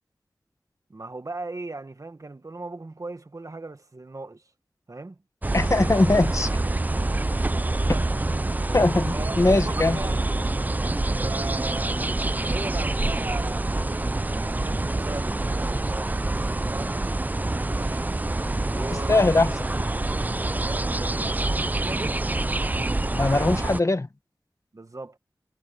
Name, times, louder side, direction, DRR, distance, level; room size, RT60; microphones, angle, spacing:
voice 1, 0.9-4.4 4.9-5.2 7.4-8.5 9.1-10.3 11.2-17.1 17.7-18.2 18.7-19.5 20.5-22.4 24.7-25.2, right 2 dB, 50° right, 1.6 m, -38 dB
sound 1, 5.4-23.8, right 2 dB, 25° right, 0.4 m, -26 dB
voice 2, 5.5-6.5 8.7-10.0 19.1-19.5 23.1-24.1, left 2 dB, 45° left, 1.4 m, -21 dB
wide cardioid pair, 55°, 7 cm